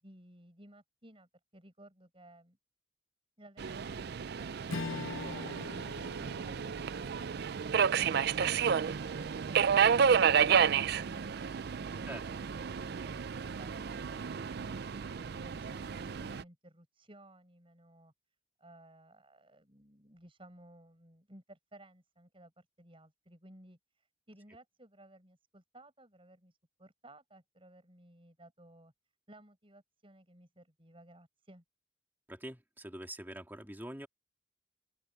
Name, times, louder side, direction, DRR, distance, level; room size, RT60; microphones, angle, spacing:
voice 1, 0.0-2.6 3.4-7.1 15.2-18.1 18.6-28.9 29.3-31.6, right 1 dB, 25° right, 7.5 m, -57 dB
Subway metro underground, 3.6-16.4, right 7 dB, 55° right, 0.4 m, -31 dB
Strum, 4.7-9.3, left 4 dB, 80° left, 0.8 m, -44 dB
voice 2, 32.3-34.1, right 1 dB, 10° right, 2.6 m, -44 dB
open air
head